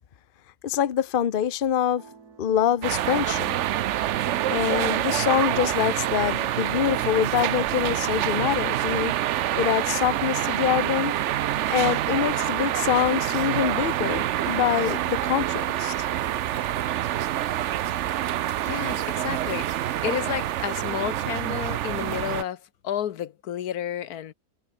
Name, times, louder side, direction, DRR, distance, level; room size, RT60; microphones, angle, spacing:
voice 1, 0.6-2.0 2.4-3.6 4.5-9.1 9.6-11.1 11.7-16.1, left 9 dB, 45° left, 0.9 m, -25 dB
sound 1, 2.0-7.3, right 5 dB, 90° right, 2.7 m, -46 dB
sound 2, 2.8-22.4, right 12 dB, 65° right, 0.8 m, -26 dB
Gurgling, 15.5-21.0, right 2 dB, 45° right, 4.2 m, -50 dB
voice 2, 18.6-24.3, left 10 dB, 75° left, 1.4 m, -31 dB
omnidirectional pair, 1.6 m